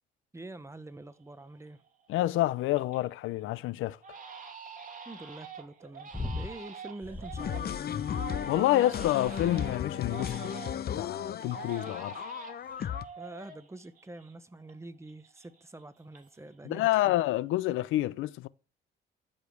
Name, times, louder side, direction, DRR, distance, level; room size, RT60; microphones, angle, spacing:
voice 1, 0.3-1.8 5.0-7.8 13.2-17.1, right 2 dB, 15° right, 1.1 m, -46 dB
Crying sobbing, 0.9-1.0 1.4-1.9 2.3-3.1 3.4-3.6 4.0-11.0 11.4-14.8 15.0-16.5 16.8-17.4, right 6 dB, 40° right, 2.8 m, -46 dB
voice 2, 2.1-4.0 8.5-10.6 11.0-12.2 16.6-18.5, left 15 dB, 90° left, 0.6 m, -28 dB
sound 1, 6.1-6.6 7.0-7.6 8.1-8.8 9.2-9.7 10.4-10.7 11.4-11.8 12.7-12.8, left 3 dB, 10° left, 1.6 m, -40 dB
sound 2, 7.4-13.0, left 9 dB, 50° left, 0.8 m, -35 dB
13.0 x 5.2 x 7.9 m
cardioid pair, 90°, 20 cm